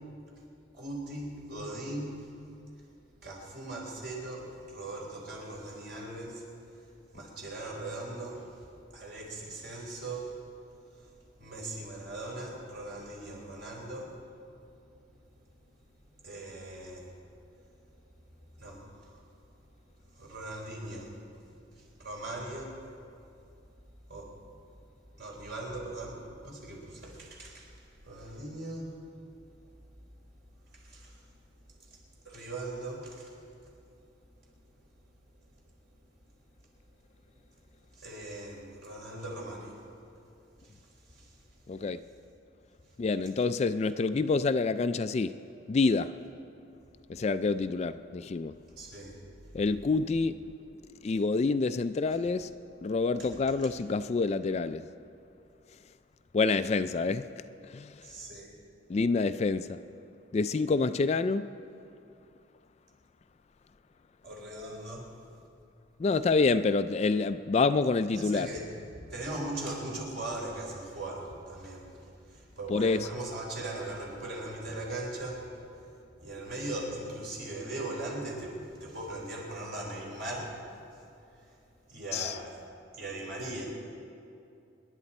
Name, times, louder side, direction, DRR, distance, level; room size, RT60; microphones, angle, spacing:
voice 1, 0.7-2.2 3.2-6.5 7.1-8.5 8.9-10.3 11.0-11.1 11.4-14.2 16.2-17.1 18.6-19.2 20.1-21.1 21.7-22.8 24.1-24.3 25.2-27.8 28.0-29.0 30.7-31.2 31.8-31.9 32.2-33.3 37.9-39.8 40.6-40.8 41.1-41.4 48.8-49.2 53.2-53.3 58.0-58.6 64.2-65.1 68.1-68.7 69.1-75.9 76.2-80.6 81.9-82.5 82.9-83.7, right 2 dB, 60° right, 4.0 m, -39 dB
voice 2, 41.7-42.0 43.0-45.3 45.7-46.1 47.1-48.5 49.5-50.4 51.0-52.5 52.8-54.8 56.3-57.2 57.7-57.9 58.9-59.8 60.3-61.5 66.0-68.5 72.7-73.1 82.1-82.4, left 4 dB, 35° left, 0.3 m, -27 dB
26.0 x 11.0 x 4.3 m
head